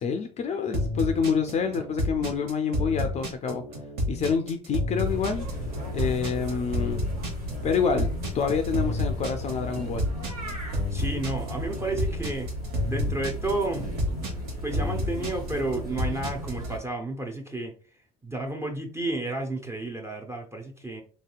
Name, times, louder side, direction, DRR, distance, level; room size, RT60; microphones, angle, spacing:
voice 1, 0.0-3.7 4.1-5.5 5.9-7.0 7.6-8.1 8.3-10.0, left 6 dB, 35° left, 7 dB, 0.4 m, -27 dB
sound 1, 0.7-16.7, left 1 dB, 60° right, 0.9 m, -30 dB
sound 2, 5.0-16.8, equal, 90° right, 0.9 m, -35 dB
voice 2, 10.9-12.5 12.9-13.9 14.6-17.7 18.2-21.0, right 2 dB, 15° right, 2 dB, 0.5 m, -31 dB
3.2 x 2.7 x 2.3 m, 0.41 s
hypercardioid pair, 60°, 19 cm